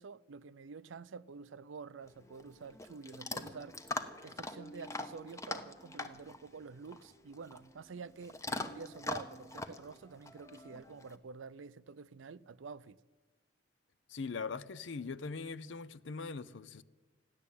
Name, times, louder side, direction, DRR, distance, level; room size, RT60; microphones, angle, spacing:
voice 1, 0.0-13.0, right 5 dB, 90° right, 0.5 m, -49 dB
Chewing mastication / Dog, 2.0-11.2, left 2 dB, 15° left, 0.8 m, -43 dB
voice 2, 14.1-16.8, left 4 dB, 75° left, 0.6 m, -41 dB
15.0 x 10.5 x 8.5 m
head